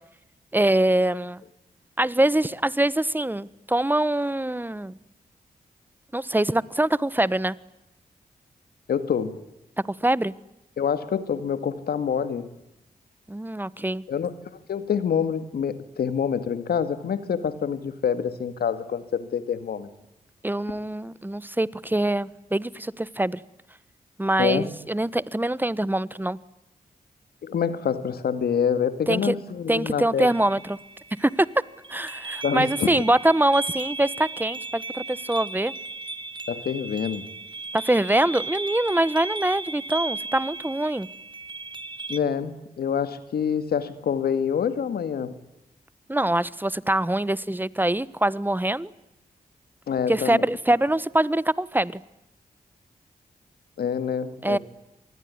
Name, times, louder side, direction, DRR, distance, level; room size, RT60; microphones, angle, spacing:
voice 1, 0.5-1.4 2.0-5.0 6.1-7.6 10.0-10.3 13.3-14.0 20.4-23.4 24.2-26.4 29.1-29.3 29.7-30.8 31.2-31.5 31.9-35.7 37.7-41.1 46.1-48.9 50.1-52.0 54.4-54.6, right 1 dB, 10° right, 19 dB, 1.3 m, -24 dB
voice 2, 8.9-9.4 10.8-12.5 14.1-14.3 14.7-19.9 24.4-24.7 27.4-30.3 32.4-33.0 36.5-37.2 42.1-45.4 49.9-50.4 53.8-54.6, left 7 dB, 90° left, 12 dB, 2.1 m, -26 dB
sound 1, 30.2-42.2, right 3 dB, 30° right, 1.5 m, -36 dB
27.0 x 20.0 x 9.7 m, 0.89 s
cardioid pair, 55°, 16 cm